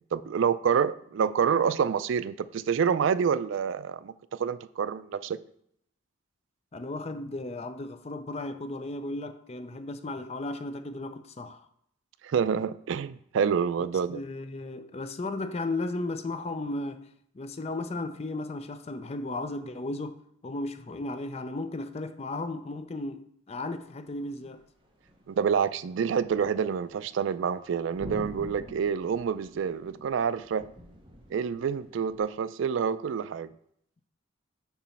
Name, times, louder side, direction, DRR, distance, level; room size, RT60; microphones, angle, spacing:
voice 1, 0.1-4.1 4.4-5.4 12.2-14.2 25.3-30.7 31.3-33.5, right 7 dB, 70° right, 0.3 m, -27 dB
voice 2, 6.7-11.6 14.1-17.1 17.3-24.6, left 2 dB, 30° left, 0.4 m, -35 dB
sound 1, 24.6-32.2, equal, 25° right, 0.9 m, -47 dB
6.9 x 3.0 x 5.7 m
head